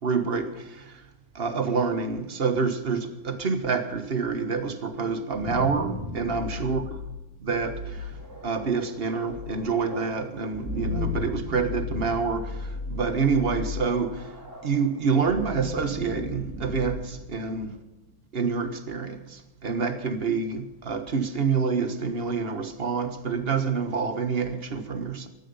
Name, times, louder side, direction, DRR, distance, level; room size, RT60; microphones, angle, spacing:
voice 1, 0.0-1.1 1.3-6.8 7.4-14.4 14.6-17.8 18.3-25.3, right 5 dB, 35° right, 1.5 m, -27 dB
Demon Roars, 5.2-17.9, left 3 dB, 10° right, 3.7 m, -36 dB
15.0 x 13.0 x 5.6 m
omnidirectional pair, 1.9 m